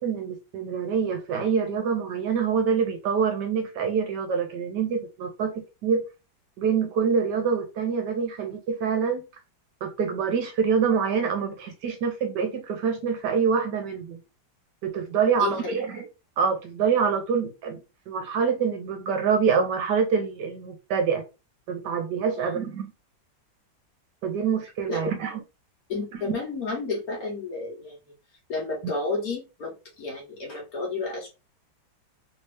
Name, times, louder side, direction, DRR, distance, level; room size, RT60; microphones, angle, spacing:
voice 1, 0.0-5.5 5.8-6.0 6.6-9.2 9.8-14.2 14.8-16.1 16.4-17.8 18.1-21.2 21.7-22.9 24.2-25.4, right 6 dB, 70° right, 1.2 m, -25 dB
voice 2, 15.4-15.7 22.4-22.5 24.9-25.1 25.9-28.0 28.5-31.3, left 3 dB, 55° left, 1.4 m, -31 dB
3.3 x 2.7 x 3.2 m
omnidirectional pair, 2.1 m